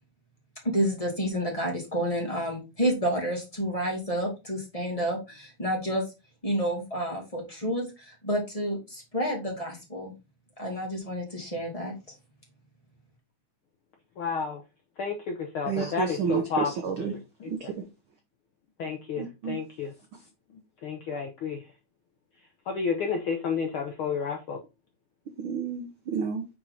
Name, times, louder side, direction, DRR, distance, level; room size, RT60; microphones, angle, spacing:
voice 1, 0.6-6.0 6.4-10.1 10.6-11.9, equal, 15° left, 1.9 m, -29 dB
voice 2, 14.2-14.6 15.0-17.5 18.8-19.9 20.8-21.6 22.7-24.6, left 5 dB, 65° left, 1.4 m, -31 dB
voice 3, 15.6-17.1 17.5-17.7 19.2-19.6 25.4-26.5, right 6 dB, 70° right, 1.2 m, -30 dB
6.0 x 4.6 x 3.9 m
omnidirectional pair, 3.4 m